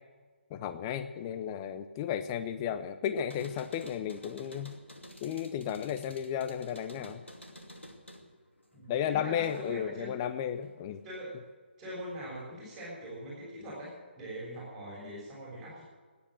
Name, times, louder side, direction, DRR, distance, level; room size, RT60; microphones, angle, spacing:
voice 1, 0.5-4.7 5.2-7.2 8.9-11.0, left 9 dB, 25° left, 10 dB, 0.6 m, -34 dB
sound 1, 3.2-9.9 10.2-11.1, equal, 90° left, 2.6 m, -51 dB
voice 2, 8.7-10.1 11.0-11.3 11.8-15.8, right 1 dB, 5° right, -10 dB, 6.6 m, -42 dB
18.5 x 9.6 x 7.7 m, 1.5 s
figure-of-eight pair, 140°, 6 cm